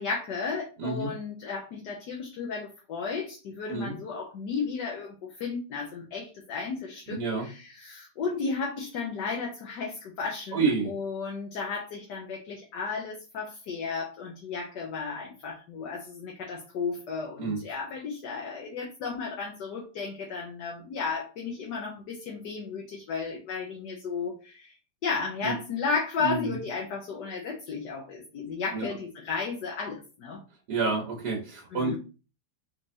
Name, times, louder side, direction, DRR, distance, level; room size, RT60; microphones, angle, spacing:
voice 1, 0.0-24.8 25.0-30.4 31.7-32.0, left 5 dB, 70° left, -1 dB, 1.5 m, -34 dB
voice 2, 0.8-1.1 3.7-3.9 7.1-7.5 10.5-10.9 17.4-17.6 25.4-25.5 26.2-26.6 28.7-28.9 30.7-32.0, right 4 dB, 65° right, -3 dB, 1.8 m, -29 dB
5.3 x 3.5 x 2.7 m, 0.33 s
omnidirectional pair, 2.0 m